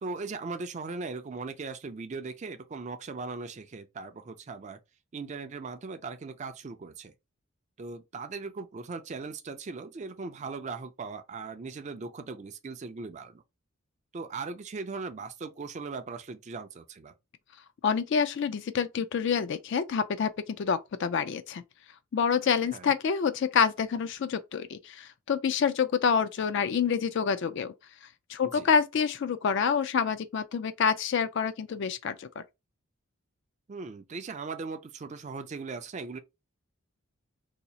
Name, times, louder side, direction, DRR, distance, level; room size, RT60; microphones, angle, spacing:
voice 1, 0.0-4.8 5.1-7.1 7.8-13.4 14.1-17.1 22.7-22.9 28.5-28.7 33.7-36.2, right 4 dB, 35° right, 0.4 m, -39 dB
voice 2, 17.8-21.6 22.1-27.7 28.3-32.4, left 6 dB, 55° left, 0.3 m, -27 dB
2.8 x 2.3 x 3.9 m
head